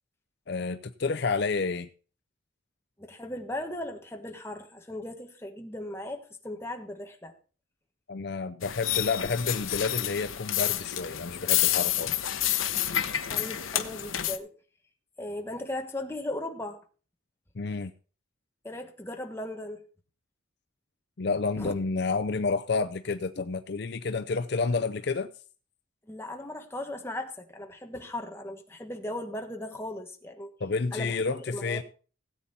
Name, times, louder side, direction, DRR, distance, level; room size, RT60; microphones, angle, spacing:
voice 1, 0.5-1.9 8.1-12.4 17.6-17.9 21.2-25.3 30.6-31.8, left 4 dB, 55° left, 0.5 m, -30 dB
voice 2, 3.0-7.3 13.3-14.5 15.2-16.8 18.6-19.8 21.6-21.7 26.0-30.5 30.9-31.8, left 1 dB, 10° left, 1.4 m, -37 dB
sound 1, 8.6-14.4, left 12 dB, 80° left, 1.0 m, -29 dB
17.0 x 8.5 x 4.2 m
head